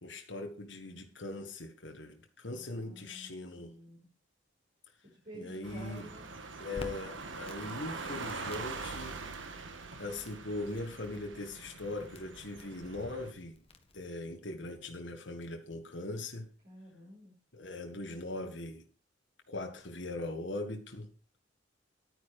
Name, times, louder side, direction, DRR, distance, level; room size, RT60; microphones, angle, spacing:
voice 1, 0.0-3.7 5.4-6.1 6.6-9.2 10.0-13.6 13.9-16.5 17.5-18.8 19.5-21.1, left 2 dB, 65° left, 1.8 m, -40 dB
voice 2, 2.4-3.3 3.6-4.0 5.0-6.2 16.6-17.3, right 1 dB, 45° right, 5.8 m, -51 dB
sound 1, 5.6-13.3, right 4 dB, 80° right, 1.7 m, -43 dB
Crackle, 6.7-14.0, left 1 dB, 30° left, 1.5 m, -52 dB
11.0 x 9.6 x 4.9 m
head